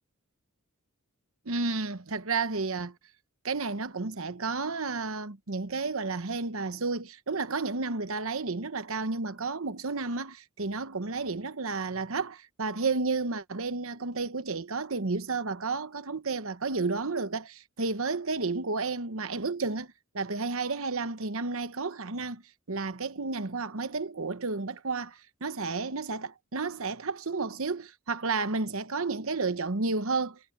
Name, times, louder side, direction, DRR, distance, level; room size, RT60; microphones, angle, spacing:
voice 1, 1.5-2.9 3.4-22.4 22.7-30.4, right 3 dB, 65° right, 1.0 m, -32 dB
head